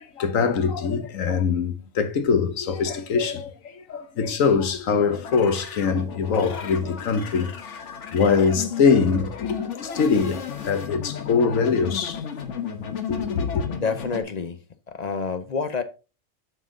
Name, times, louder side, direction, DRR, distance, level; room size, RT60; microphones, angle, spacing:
voice 1, 0.0-7.8 8.1-12.2 13.1-13.6, left 5 dB, 80° left, 1.3 m, -23 dB
sound 1, 5.0-14.2, left 7 dB, 65° left, 1.3 m, -34 dB
voice 2, 13.7-15.8, left 5 dB, 45° left, 0.6 m, -28 dB
7.6 x 5.6 x 3.8 m
omnidirectional pair, 1.4 m